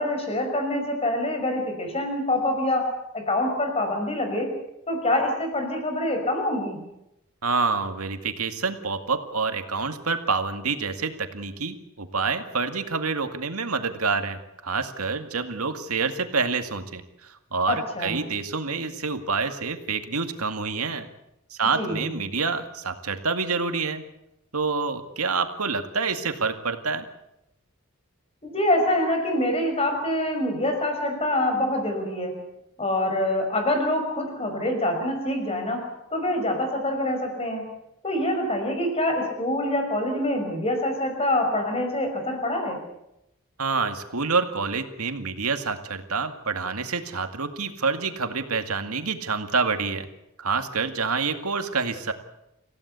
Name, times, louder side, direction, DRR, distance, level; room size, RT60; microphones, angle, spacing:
voice 1, 0.0-4.5 4.9-6.8 17.7-18.2 21.7-22.2 28.4-32.4 32.8-37.6 38.0-42.8, left 1 dB, 25° left, 4 dB, 5.8 m, -25 dB
voice 2, 7.4-21.1 21.5-24.0 24.5-27.1 43.6-50.1 50.4-52.1, right 4 dB, 90° right, 7 dB, 2.2 m, -27 dB
27.5 x 16.5 x 8.3 m, 0.85 s
head